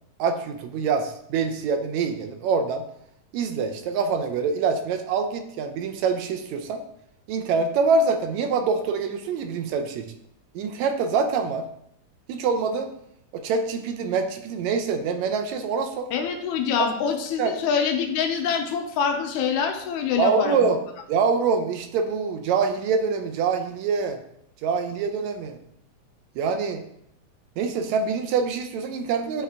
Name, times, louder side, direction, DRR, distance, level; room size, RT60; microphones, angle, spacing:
voice 1, 0.2-2.9 3.3-6.8 7.3-10.1 10.6-11.7 12.3-12.9 13.3-16.1 16.8-16.9 17.4-17.5 20.2-20.8 21.1-24.2 24.6-25.6 26.4-26.8 27.6-29.4, right 5 dB, 75° right, 7 dB, 1.9 m, -25 dB
voice 2, 16.1-20.7, left 6 dB, 80° left, 4 dB, 2.1 m, -25 dB
9.7 x 3.5 x 3.6 m, 0.75 s
omnidirectional pair, 3.4 m